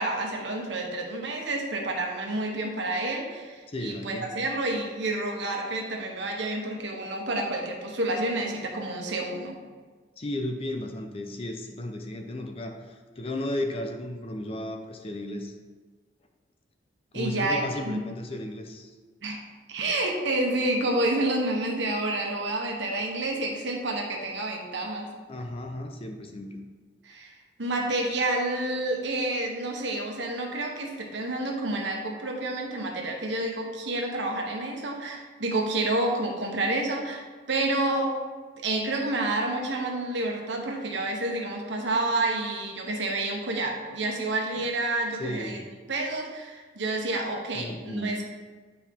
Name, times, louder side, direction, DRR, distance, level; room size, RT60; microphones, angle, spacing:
voice 1, 0.0-9.6 17.1-18.1 19.2-19.4 19.7-25.1 27.0-27.3 27.6-38.1 38.6-45.6 45.9-48.3, right 2 dB, 65° right, 1 dB, 1.1 m, -29 dB
voice 2, 3.7-4.3 10.2-15.5 17.1-18.9 25.3-26.6 45.2-45.6 47.5-48.2, left 1 dB, 30° left, 4 dB, 0.5 m, -34 dB
9.4 x 4.5 x 3.6 m, 1.4 s
head